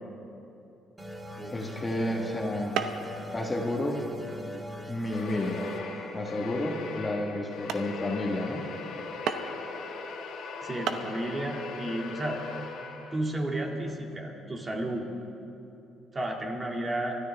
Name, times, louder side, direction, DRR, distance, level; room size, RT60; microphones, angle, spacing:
sound 1, 1.0-8.2, left 1 dB, 10° right, 1.7 m, -42 dB
voice 1, 1.5-2.8 3.3-4.0 4.9-5.7 6.1-8.6, left 1 dB, 20° left, 0 dB, 1.6 m, -31 dB
sound 2, 2.7-3.1 3.5-3.9 4.5-4.6 5.2-5.4 6.1-6.2 6.7-6.8 7.3-7.4 7.7-7.9 9.3-9.7 10.5-10.6 10.9-11.1, right 7 dB, 75° right, 0.9 m, -33 dB
sound 3, 5.1-13.4, left 4 dB, 75° left, 1.9 m, -39 dB
voice 2, 10.6-12.4 13.1-15.1 16.1-17.1, right 1 dB, 25° right, 0 dB, 2.3 m, -32 dB
24.0 x 13.0 x 3.5 m, 2.8 s
cardioid pair, 100°, 0 cm